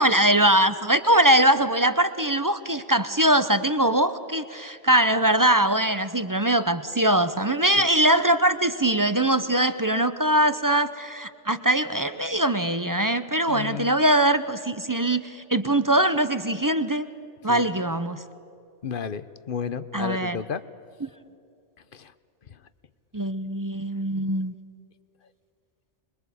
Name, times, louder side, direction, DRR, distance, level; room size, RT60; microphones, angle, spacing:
voice 1, 0.0-17.1 17.4-18.2 19.9-20.4 21.0-21.1 23.1-24.5, right 1 dB, 20° right, 11 dB, 0.7 m, -22 dB
voice 2, 13.5-14.0 17.5-17.6 18.8-20.6 21.9-22.1 22.5-22.6, left 7 dB, 50° left, 14 dB, 0.9 m, -32 dB
25.5 x 22.5 x 8.4 m, 2.6 s
omnidirectional pair, 1.2 m